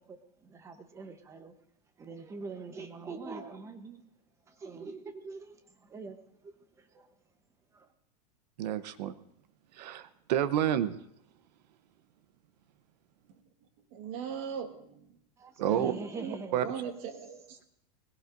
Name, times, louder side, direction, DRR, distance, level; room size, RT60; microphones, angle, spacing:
voice 1, 0.0-1.5 2.0-4.1 4.5-7.2 7.7-7.9 15.4-16.8, right 4 dB, 15° right, 8 dB, 0.9 m, -44 dB
voice 2, 8.6-9.1 9.7-10.9 15.6-15.9 16.5-16.6, right 10 dB, 80° right, 12 dB, 0.9 m, -29 dB
voice 3, 13.9-15.2 15.6-17.6, right 8 dB, 50° right, 5 dB, 1.7 m, -40 dB
20.5 x 16.5 x 2.6 m, 0.73 s
supercardioid pair, 160°, 21 cm